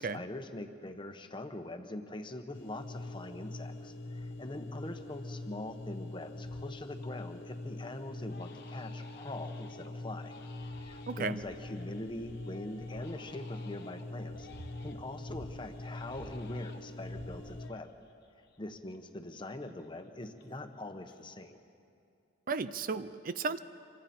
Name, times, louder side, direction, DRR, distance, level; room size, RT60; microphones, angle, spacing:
voice 1, 0.0-10.3 10.8-14.5 14.8-17.9 18.6-21.6, left 1 dB, 25° left, 7 dB, 1.1 m, -43 dB
sound 1, 2.5-17.7, left 2 dB, 85° left, 1.0 m, -43 dB
sound 2, 4.2-4.5 5.1-5.2 5.7-5.9 6.4-6.8 8.2-8.3 9.1-9.8 10.3-13.2 13.9-16.6 17.0-17.9 18.7-18.8, right 1 dB, 75° right, 1.1 m, -53 dB
Crying sobbing, 5.7-6.1 6.5-7.4 7.7-7.8 8.3-15.2 15.7-19.0 19.3-20.8 21.1-21.6, left 3 dB, 65° left, 1.2 m, -57 dB
voice 2, 11.1-11.4 22.5-23.6, right 4 dB, 50° right, 13 dB, 0.5 m, -34 dB
26.0 x 25.0 x 4.4 m, 2.5 s
head